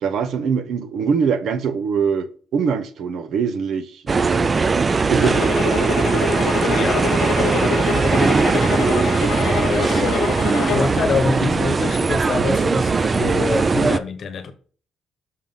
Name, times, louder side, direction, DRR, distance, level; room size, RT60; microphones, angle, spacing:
voice 1, 0.0-4.5 5.1-5.7, right 6 dB, 65° right, 0.7 m, -23 dB
sound 1, 4.1-14.0, right 4 dB, 25° right, 0.3 m, -19 dB
sound 2, 5.2-11.0, left 7 dB, 80° left, 0.5 m, -26 dB
voice 2, 6.6-7.1 7.3-8.2 9.3-14.5, left 5 dB, 45° left, 1.0 m, -26 dB
6.5 x 3.6 x 5.5 m
cardioid pair, 140°, 0 cm